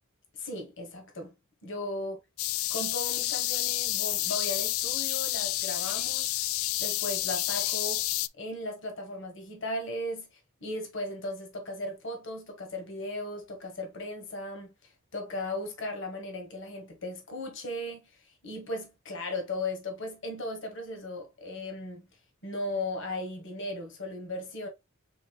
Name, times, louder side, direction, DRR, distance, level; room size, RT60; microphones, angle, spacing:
voice 1, 0.3-1.3 1.6-2.2 2.7-6.4 6.8-8.0 8.4-22.1 22.4-24.7, left 1 dB, 60° left, 1.4 m, -37 dB
sound 1, 2.4-8.3, left 16 dB, 75° left, 0.3 m, -30 dB
5.4 x 3.7 x 2.4 m
head